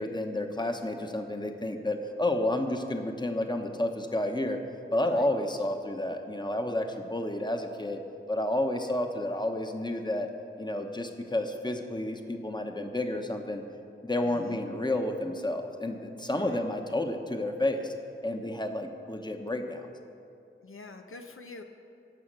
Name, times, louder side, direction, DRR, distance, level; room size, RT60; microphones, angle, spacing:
voice 1, 0.0-4.6 4.9-8.0 8.3-10.3 10.6-13.6 14.0-17.9 18.2-19.9, left 1 dB, 20° left, 5 dB, 1.0 m, -30 dB
voice 2, 14.2-14.6 16.3-16.6 20.6-21.6, left 3 dB, 80° left, 5 dB, 0.7 m, -46 dB
14.5 x 5.8 x 6.5 m, 2.6 s
wide cardioid pair, 40°, 21 cm